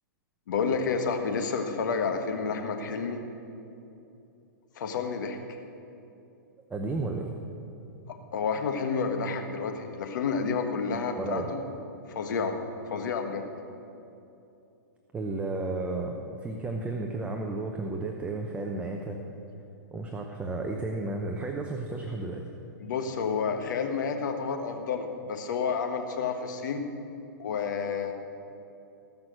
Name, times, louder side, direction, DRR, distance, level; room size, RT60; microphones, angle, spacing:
voice 1, 0.5-3.2 4.7-5.4 8.1-11.6 12.1-12.6 12.9-13.5 22.8-26.8 27.4-28.1, left 5 dB, 65° left, 5 dB, 1.5 m, -30 dB
voice 2, 6.7-7.4 11.2-11.5 15.1-19.2 19.9-22.4, right 2 dB, 10° right, 2 dB, 0.9 m, -33 dB
18.5 x 6.2 x 6.4 m, 2.8 s
hypercardioid pair, 125°, 11 cm